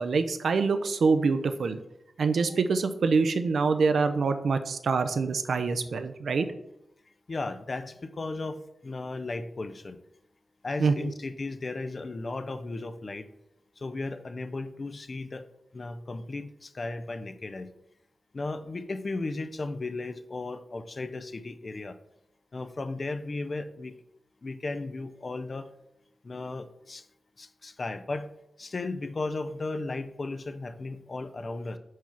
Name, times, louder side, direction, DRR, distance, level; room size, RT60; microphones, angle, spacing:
voice 1, 0.0-1.8 2.2-6.5 10.8-11.1, right 4 dB, 80° right, 9 dB, 0.5 m, -25 dB
voice 2, 7.3-10.0 10.6-13.3 13.8-15.5 15.7-17.7 18.3-22.0 22.5-24.0 24.4-25.7 26.2-27.0 27.4-28.3 28.6-31.8, left 3 dB, 35° left, 10 dB, 0.4 m, -35 dB
4.7 x 4.6 x 5.6 m, 0.83 s
wide cardioid pair, 170°, 0 cm